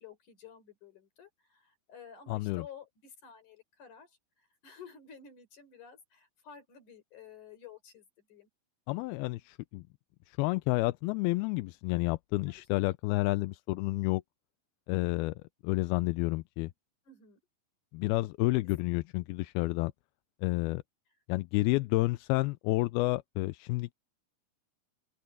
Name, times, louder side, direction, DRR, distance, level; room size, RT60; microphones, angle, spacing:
voice 1, 0.0-8.5 12.5-12.7 17.0-17.4, left 7 dB, 50° left, 5.9 m, -52 dB
voice 2, 2.3-2.6 8.9-9.8 10.3-14.2 14.9-16.7 17.9-19.9 20.4-20.8 21.3-23.9, left 20 dB, 80° left, 2.4 m, -30 dB
open air
omnidirectional pair, 4.6 m